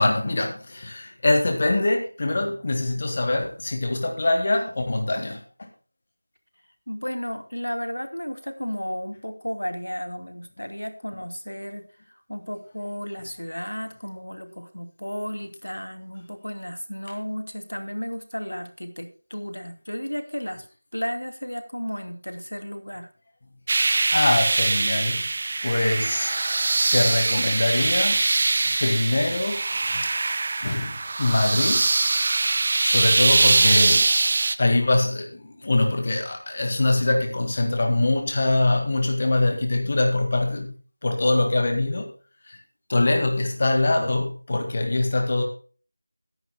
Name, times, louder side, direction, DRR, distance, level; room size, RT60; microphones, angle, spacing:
voice 1, 0.0-5.4 24.1-25.4 25.6-26.4 26.9-28.2 28.8-29.6 29.9-30.1 30.6-31.9 32.8-34.1 34.6-40.7 41.0-42.1 42.9-45.4, left 2 dB, 30° left, 4 dB, 1.9 m, -23 dB
voice 2, 6.9-11.8 12.3-20.6 20.9-23.1, equal, 85° left, 7 dB, 2.6 m, -33 dB
sound 1, 23.7-34.6, right 3 dB, 30° right, 0.6 m, -22 dB
17.5 x 11.0 x 2.3 m, 0.37 s
figure-of-eight pair, 170°, 0 cm